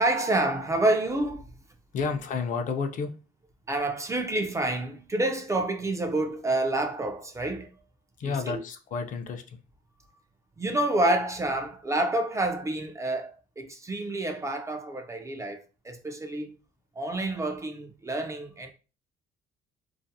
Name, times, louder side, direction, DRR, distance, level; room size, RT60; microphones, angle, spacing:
voice 1, 0.0-1.5 3.7-7.7 8.2-8.6 10.6-13.3 13.6-16.5 17.0-18.7, right 2 dB, 20° right, 0.3 m, -28 dB
voice 2, 1.9-3.1 8.2-9.6, left 5 dB, 50° left, 0.4 m, -31 dB
2.4 x 2.4 x 2.6 m
cardioid pair, 110°, 17 cm